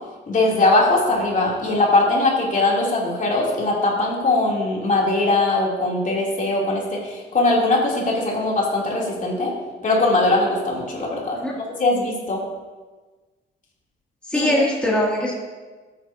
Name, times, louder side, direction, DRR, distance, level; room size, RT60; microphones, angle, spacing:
voice 1, 0.3-9.5 9.8-11.4 11.8-12.4 14.3-14.5, left 2 dB, 40° left, -4 dB, 2.9 m, -20 dB
voice 2, 14.3-15.3, left 1 dB, 5° left, -5 dB, 2.3 m, -21 dB
13.0 x 9.2 x 2.7 m, 1.3 s
cardioid pair, 90°, 20 cm